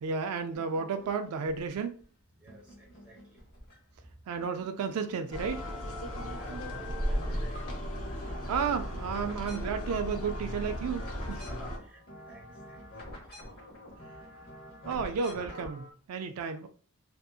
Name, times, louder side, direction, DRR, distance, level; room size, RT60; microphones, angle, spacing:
voice 1, 0.0-1.9 4.3-5.6 8.2-11.5 14.8-16.7, right 5 dB, 75° right, 0.3 m, -33 dB
sound 1, 0.5-2.0 2.5-4.1 4.4-5.7 6.0-15.9, equal, 45° left, 0.9 m, -48 dB
voice 2, 2.4-3.4 6.2-8.3 11.5-13.0 13.4-13.5, equal, 5° right, 0.8 m, -51 dB
sound 2, 5.3-11.8, equal, 65° left, 0.6 m, -36 dB
2.6 x 2.5 x 2.3 m
head